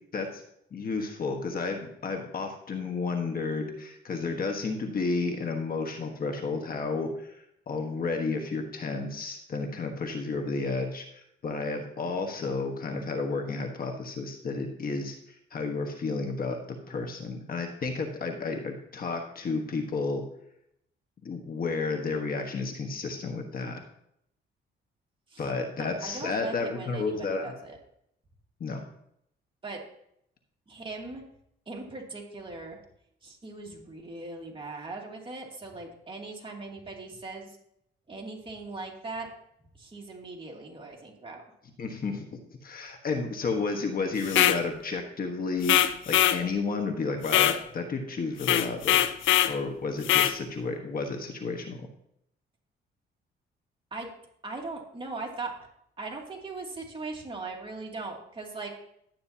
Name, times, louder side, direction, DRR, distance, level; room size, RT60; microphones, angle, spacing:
voice 1, 0.7-7.3 7.7-15.1 15.5-20.2 21.2-23.8 25.4-27.5 28.6-28.8 41.8-42.2 42.6-45.8 46.1-49.0 49.5-51.9, left 4 dB, 50° left, 4 dB, 1.4 m, -32 dB
voice 2, 25.8-27.8 29.6-29.8 30.7-31.2 31.7-32.8 33.2-37.6 38.1-39.3 39.8-41.4 53.9-54.1 54.4-55.7 56.0-58.7, right 3 dB, 25° right, -1 dB, 2.6 m, -39 dB
sound 1, 44.2-44.6 45.6-46.4 47.3-47.6 48.4-49.6 50.0-50.4, left 12 dB, 75° left, 0.6 m, -22 dB
12.0 x 8.8 x 2.9 m, 0.73 s
cardioid pair, 90°, 20 cm